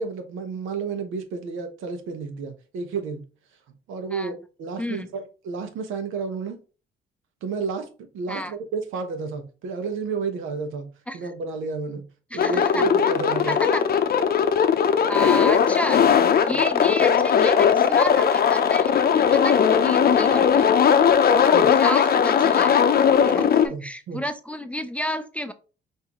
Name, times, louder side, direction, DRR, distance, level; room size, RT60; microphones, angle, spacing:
voice 1, 0.0-3.2 3.9-6.6 7.4-13.6 16.5-16.6 21.5-21.7 23.3-24.2, right 4 dB, 85° right, 0.9 m, -31 dB
voice 2, 12.3-12.9 13.5-13.8 15.1-20.8 21.4-22.8 23.3-25.5, left 1 dB, 5° left, 0.4 m, -31 dB
sound 1, 12.4-23.7, left 7 dB, 50° left, 0.6 m, -18 dB
5.5 x 2.7 x 2.9 m
cardioid pair, 90°, 20 cm